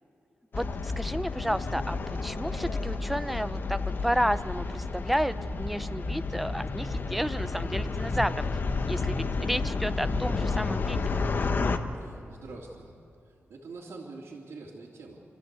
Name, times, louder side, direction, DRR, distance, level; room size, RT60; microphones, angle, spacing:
sound 1, 0.5-11.8, left 3 dB, 45° left, 1.1 m, -31 dB
voice 1, 0.5-8.4 8.9-11.0, equal, ahead, 13 dB, 0.6 m, -31 dB
sound 2, 2.2-10.3, left 2 dB, 30° left, 4.5 m, -50 dB
voice 2, 11.9-13.0 13.2-15.2, right 3 dB, 70° right, -6 dB, 2.9 m, -45 dB
28.5 x 13.5 x 8.2 m, 2.6 s
wide cardioid pair, 100°, 5 cm